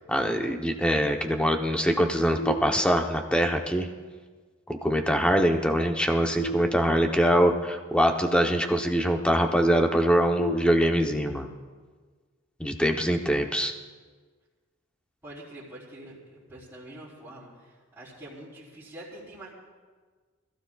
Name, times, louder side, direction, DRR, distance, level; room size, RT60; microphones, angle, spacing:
voice 1, 0.1-3.9 4.7-11.5 12.6-13.7, equal, 5° left, 3 dB, 0.9 m, -23 dB
sound 1, 2.4-3.3 6.4-7.4 10.4-11.4, equal, 65° left, 1.6 m, -36 dB
voice 2, 15.2-19.5, right 1 dB, 10° right, -12 dB, 3.8 m, -45 dB
25.5 x 15.0 x 2.4 m, 1.5 s
head